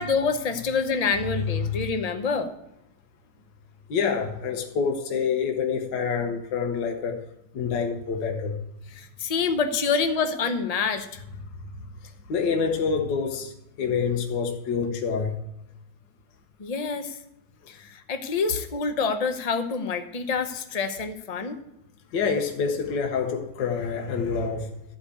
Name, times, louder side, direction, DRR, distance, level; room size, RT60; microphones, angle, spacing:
voice 1, 0.0-2.5 9.0-11.2 16.6-17.2 17.7-21.6, left 5 dB, 40° left, 7 dB, 0.5 m, -27 dB
voice 2, 1.2-1.9 3.9-7.2 7.5-8.6 11.4-15.4 22.1-24.7, left 5 dB, 70° left, 3 dB, 1.7 m, -27 dB
13.5 x 5.2 x 8.3 m, 0.87 s
omnidirectional pair, 2.1 m